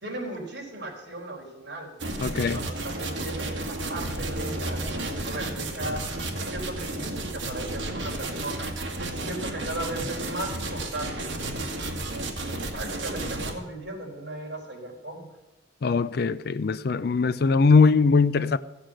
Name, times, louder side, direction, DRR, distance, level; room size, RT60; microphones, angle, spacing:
voice 1, 0.0-11.3 12.0-12.3 12.7-15.3, right 1 dB, 60° right, 4.3 m, -37 dB
sound 1, 2.0-13.5, right 2 dB, 75° right, 2.2 m, -32 dB
voice 2, 2.2-2.6 15.8-18.6, left 4 dB, 55° left, 0.4 m, -21 dB
16.0 x 8.3 x 7.6 m
head